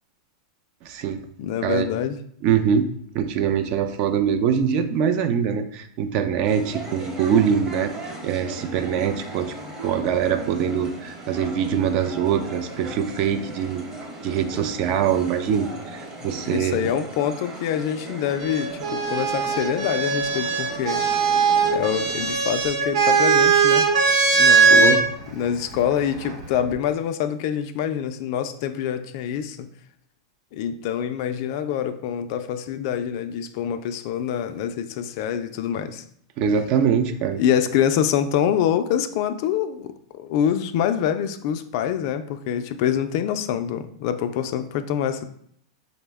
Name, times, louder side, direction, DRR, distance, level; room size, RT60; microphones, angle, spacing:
voice 1, 0.8-1.2 1.6-1.9 2.4-2.9 3.1-7.9 8.2-9.5 9.8-13.8 14.2-16.9 24.7-25.0 36.4-37.4, right 8 dB, 40° right, 9 dB, 0.4 m, -23 dB
voice 2, 1.4-2.2 16.5-21.0 21.7-23.9 24.3-24.9 25.4-29.7 30.5-36.0 37.4-45.2, left 9 dB, 50° left, 10 dB, 0.3 m, -25 dB
sound 1, 6.4-22.3, right 2 dB, 25° right, 0.9 m, -38 dB
sound 2, 18.4-25.0 26.1-26.7, right 5 dB, 70° right, 0.9 m, -20 dB
4.9 x 2.1 x 3.4 m, 0.68 s
supercardioid pair, 145°, 3 cm